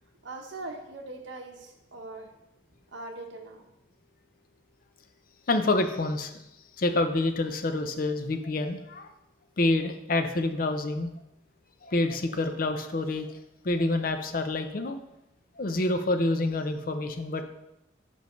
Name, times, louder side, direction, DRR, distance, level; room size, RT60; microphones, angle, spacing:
voice 1, 0.2-2.3 2.9-3.6, right 2 dB, 70° right, 3 dB, 1.0 m, -41 dB
voice 2, 5.5-6.3 6.8-9.1 9.6-11.1 11.8-13.3 13.6-15.0 15.6-17.4, left 2 dB, 50° left, 8 dB, 0.5 m, -27 dB
6.9 x 5.3 x 3.1 m, 0.87 s
head